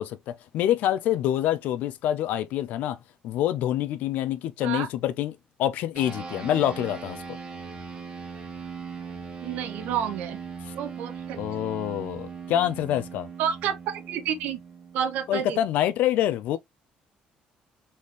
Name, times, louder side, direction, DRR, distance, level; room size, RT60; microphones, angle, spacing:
voice 1, 0.0-3.0 3.2-7.4 10.7-10.8 11.4-13.3 15.3-16.6, left 12 dB, 75° left, 0.5 m, -26 dB
sound 1, 6.0-15.7, right 5 dB, 35° right, 1.7 m, -39 dB
voice 2, 9.4-10.4 10.7-11.4 13.4-14.6 14.9-15.6, right 9 dB, 75° right, 1.1 m, -29 dB
4.1 x 3.6 x 3.0 m
cardioid pair, 140°, 3 cm